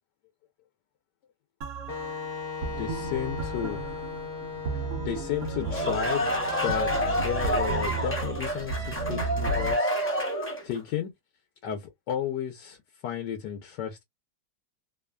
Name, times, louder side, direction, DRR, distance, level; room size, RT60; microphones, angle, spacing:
sound 1, 1.6-9.7, right 3 dB, 75° right, 0.5 m, -34 dB
Wind instrument woodwind instrument, 1.9-7.7, left 5 dB, 40° left, 0.9 m, -39 dB
voice 1, 2.8-3.8 4.7-6.3 6.6-10.3 10.6-11.1 11.6-12.8 13.0-14.0, left 10 dB, 85° left, 1.3 m, -33 dB
sound 2, 5.4-10.8, equal, 15° left, 0.5 m, -28 dB
3.0 x 2.2 x 2.2 m
omnidirectional pair, 1.8 m